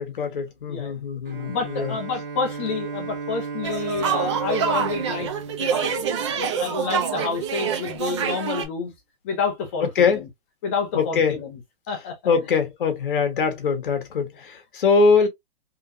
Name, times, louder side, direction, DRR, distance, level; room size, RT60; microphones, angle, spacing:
voice 1, 0.0-1.9 10.0-10.2 10.9-11.3 12.2-15.3, left 5 dB, 60° left, 1.5 m, -22 dB
Bowed string instrument, 1.2-6.9, right 5 dB, 65° right, 1.5 m, -35 dB
voice 2, 1.5-5.3 5.6-8.9 9.2-10.3 10.6-11.6 11.9-12.5, left 5 dB, 15° left, 0.5 m, -29 dB
sound 1, 3.6-8.7, right 7 dB, 30° right, 0.7 m, -26 dB
3.7 x 3.0 x 2.5 m
hypercardioid pair, 175°, 29 cm